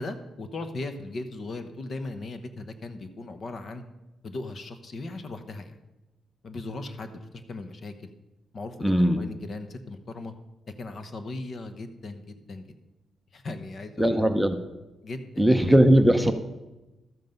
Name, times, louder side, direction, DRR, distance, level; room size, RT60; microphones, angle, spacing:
voice 1, 0.0-3.8 4.2-5.8 6.4-8.1 8.5-10.3 10.8-12.6 13.3-14.2 15.0-15.4, left 2 dB, 45° left, 9 dB, 1.0 m, -37 dB
voice 2, 8.8-9.2 14.0-14.6 15.4-16.3, right 1 dB, ahead, 7 dB, 0.7 m, -19 dB
12.5 x 7.6 x 5.3 m, 1.0 s
cardioid pair, 100°, 0 cm